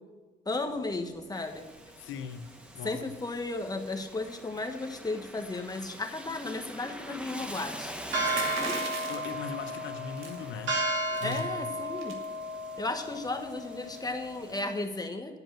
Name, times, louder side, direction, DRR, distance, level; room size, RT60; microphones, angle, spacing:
voice 1, 0.4-1.7 2.8-7.9 11.2-12.2 12.8-15.4, left 2 dB, 20° left, 5 dB, 1.3 m, -34 dB
Rain, 1.3-14.9, equal, 5° right, 0.9 m, -45 dB
voice 2, 2.0-2.5 2.7-3.1 9.1-10.8 11.2-11.8, left 6 dB, 80° left, 10 dB, 0.9 m, -40 dB
sound 1, 8.1-14.6, right 1 dB, 65° right, 2.5 m, -34 dB
sound 2, 8.2-9.4 10.2-10.5 10.8-10.9 11.1-11.4 12.0-12.3, right 4 dB, 90° right, 1.7 m, -37 dB
11.0 x 5.3 x 7.5 m, 1.4 s
cardioid pair, 90°, 20 cm